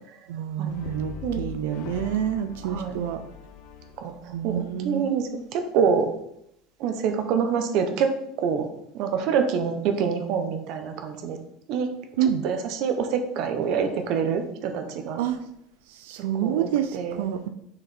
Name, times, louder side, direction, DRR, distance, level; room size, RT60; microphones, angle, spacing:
voice 1, 0.3-3.2 4.3-5.0 12.2-12.4 15.2-15.4 16.0-17.5, right 9 dB, 90° right, 9 dB, 0.4 m, -27 dB
Brass instrument, 0.7-4.9, left 7 dB, 50° left, 0.6 m, -41 dB
voice 2, 2.6-3.0 4.0-6.1 6.8-8.1 8.4-8.7 8.9-11.4 11.7-11.9 12.2-15.2 16.4-17.3, right 6 dB, 45° right, 7 dB, 0.8 m, -26 dB
6.3 x 4.8 x 4.2 m, 0.77 s
cardioid pair, 175°, 0 cm